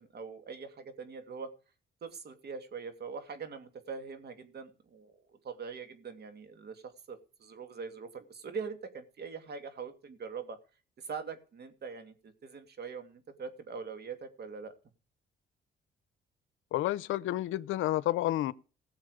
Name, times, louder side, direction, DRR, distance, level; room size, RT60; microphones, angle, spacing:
voice 1, 0.0-1.5 2.0-10.6 11.0-14.7, right 5 dB, 55° right, 2.6 m, -43 dB
voice 2, 16.7-18.5, left 15 dB, 85° left, 0.7 m, -30 dB
17.5 x 7.3 x 5.0 m
cardioid pair, 90°, 20 cm